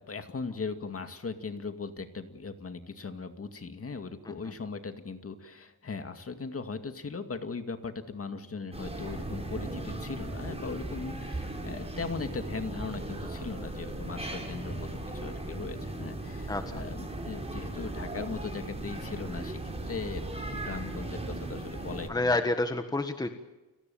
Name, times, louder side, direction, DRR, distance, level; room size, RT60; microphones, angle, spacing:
voice 1, 0.0-20.2 20.5-22.3, left 4 dB, 35° left, 8 dB, 2.2 m, -39 dB
sound 1, 8.7-22.1, right 2 dB, 15° right, 5.2 m, -37 dB
voice 2, 22.1-23.3, left 2 dB, 10° left, 7 dB, 1.5 m, -29 dB
30.0 x 19.5 x 7.2 m, 1.1 s
wide cardioid pair, 140°, 38 cm